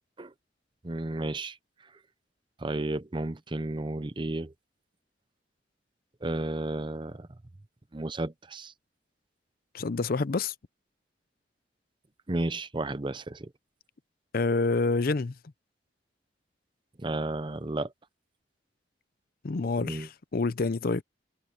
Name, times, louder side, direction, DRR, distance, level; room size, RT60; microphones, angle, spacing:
voice 1, 0.8-1.6 2.6-4.5 6.2-7.3 7.9-8.7 12.3-13.5 17.0-17.9 19.8-20.1, right 2 dB, 30° right, 0.7 m, -32 dB
voice 2, 9.7-10.5 14.3-15.3 19.4-21.0, left 3 dB, 55° left, 0.6 m, -27 dB
head